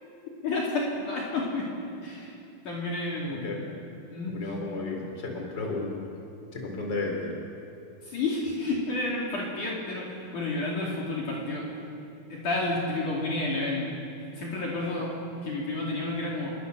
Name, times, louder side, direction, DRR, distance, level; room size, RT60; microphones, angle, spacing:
voice 1, 0.4-2.4 2.6-3.5 4.1-4.4 8.0-11.7 12.3-13.9 14.2-15.1 15.4-16.5, left 2 dB, 55° left, -4 dB, 4.4 m, -30 dB
voice 2, 3.2-3.6 4.3-6.0 6.5-7.3, left 3 dB, 25° left, 1 dB, 4.6 m, -33 dB
29.0 x 24.0 x 6.9 m, 2.7 s
omnidirectional pair, 4.5 m